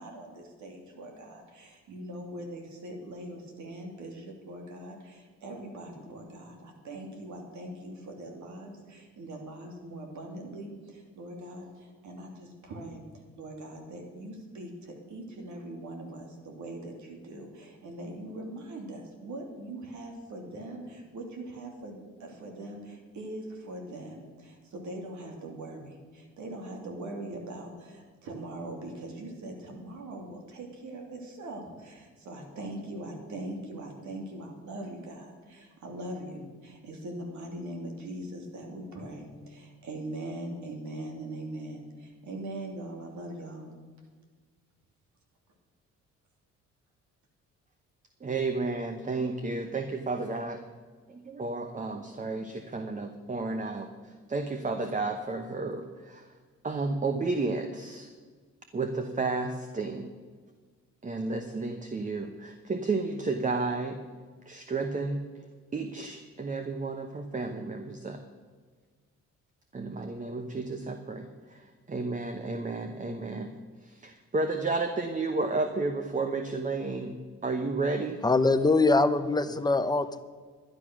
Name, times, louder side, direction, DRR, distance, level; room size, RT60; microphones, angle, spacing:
voice 1, 0.0-13.0 13.4-43.7, right 1 dB, 70° right, 2 dB, 2.8 m, -41 dB
voice 2, 48.2-50.6 51.1-56.3 56.6-58.1 58.7-60.1 61.0-64.0 64.5-65.3 65.7-68.2 69.7-73.5 73.8-77.2 77.4-78.2, right 3 dB, 25° right, 6 dB, 1.0 m, -32 dB
voice 3, 78.2-80.2, left 3 dB, 15° left, 10 dB, 0.8 m, -23 dB
11.5 x 10.5 x 6.2 m, 1.5 s
cardioid pair, 90°, 30 cm